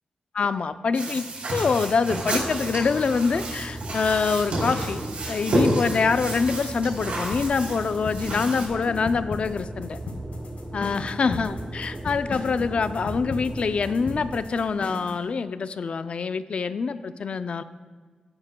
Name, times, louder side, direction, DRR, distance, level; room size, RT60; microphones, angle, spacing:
voice 1, 0.3-1.3 1.5-5.0 5.3-10.0 10.7-17.6, left 5 dB, 55° left, 12 dB, 0.3 m, -25 dB
sound 1, 0.9-8.7, right 1 dB, 70° right, 3.3 m, -30 dB
sound 2, 2.2-14.4, right 1 dB, 25° right, 0.9 m, -37 dB
sound 3, 7.3-15.2, left 3 dB, 80° left, 1.3 m, -36 dB
14.0 x 11.0 x 2.2 m, 1.5 s
wide cardioid pair, 150°, 2 cm